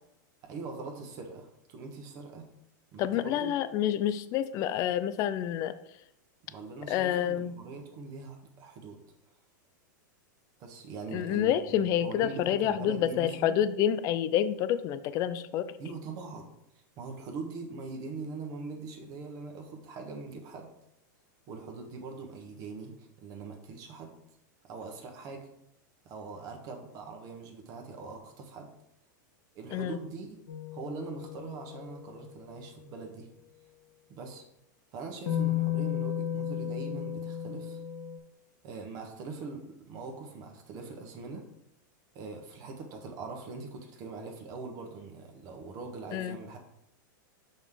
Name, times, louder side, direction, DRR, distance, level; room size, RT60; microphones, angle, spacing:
voice 1, 0.5-2.4 2.9-3.5 6.5-9.0 10.6-13.6 15.8-16.4 16.7-20.7 21.5-24.2 24.6-25.5 26.0-28.7 29.5-30.4 30.7-33.3 34.1-34.4 34.9-37.8 38.6-41.5 42.1-46.6, right 4 dB, 35° right, 3 dB, 1.1 m, -42 dB
voice 2, 3.0-5.7 6.9-7.6 11.1-15.7 29.7-30.0 46.1-46.4, left 10 dB, 30° left, 13 dB, 0.4 m, -28 dB
sound 1, 30.5-32.8 35.3-38.2, left 11 dB, 85° left, 1.3 m, -34 dB
6.2 x 5.2 x 3.8 m, 0.79 s
supercardioid pair, 150°, 11 cm